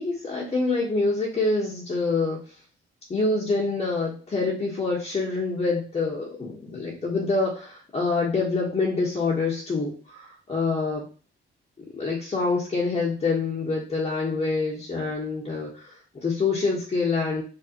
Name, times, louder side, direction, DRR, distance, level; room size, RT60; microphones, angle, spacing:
voice 1, 0.0-2.4 3.1-11.0 11.8-17.4, left 3 dB, 30° left, -4 dB, 1.3 m, -26 dB
3.9 x 3.1 x 2.9 m, 0.37 s
cardioid pair, 90°, 20 cm